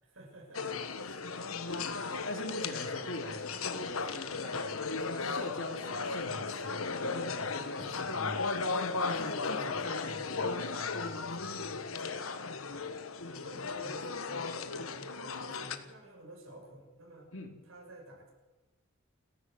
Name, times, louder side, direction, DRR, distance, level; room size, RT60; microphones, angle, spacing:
voice 1, 0.0-1.2 1.6-1.9 9.3-10.0 13.3-17.3 17.6-18.3, right 1 dB, 75° right, -1 dB, 7.2 m, -52 dB
sound 1, 0.5-15.8, left 4 dB, 90° left, 1.4 m, -36 dB
voice 2, 1.9-12.1 17.3-17.5, left 1 dB, 65° left, 3 dB, 3.5 m, -43 dB
30.0 x 11.0 x 7.9 m, 1.2 s
head